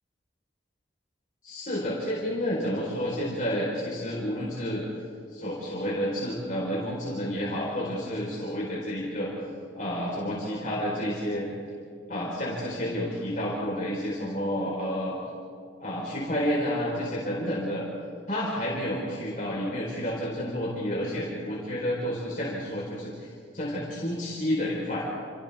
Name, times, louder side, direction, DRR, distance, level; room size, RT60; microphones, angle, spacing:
voice 1, 1.4-4.8 5.3-9.3 9.7-11.5 12.1-15.1 15.8-17.8 18.3-25.1, equal, 45° left, -5 dB, 4.4 m, -30 dB
29.5 x 29.0 x 3.6 m, 2.2 s
head